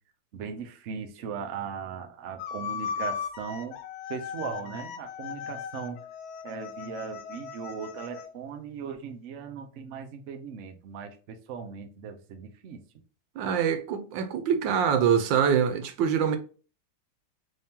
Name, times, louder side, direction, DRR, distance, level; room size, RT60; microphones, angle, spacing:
voice 1, 0.3-3.8 4.1-6.0 6.4-12.8, right 6 dB, 65° right, 0.7 m, -38 dB
sound 1, 2.4-8.3, left 7 dB, 80° left, 1.2 m, -37 dB
voice 2, 13.4-16.4, right 7 dB, 85° right, 1.3 m, -24 dB
3.4 x 2.8 x 3.5 m
omnidirectional pair, 2.0 m